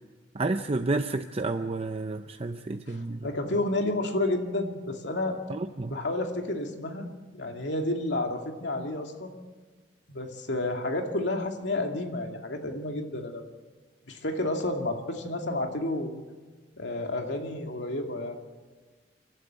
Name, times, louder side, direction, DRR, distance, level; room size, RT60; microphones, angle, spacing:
voice 1, 0.3-3.3 5.5-6.0, right 2 dB, 35° right, 7 dB, 0.6 m, -30 dB
voice 2, 2.9-5.4 5.9-7.1 7.3-9.3 10.1-13.4 14.1-16.1 16.8-18.4, left 2 dB, 70° left, 3 dB, 2.5 m, -30 dB
29.5 x 12.5 x 8.1 m, 1.4 s
head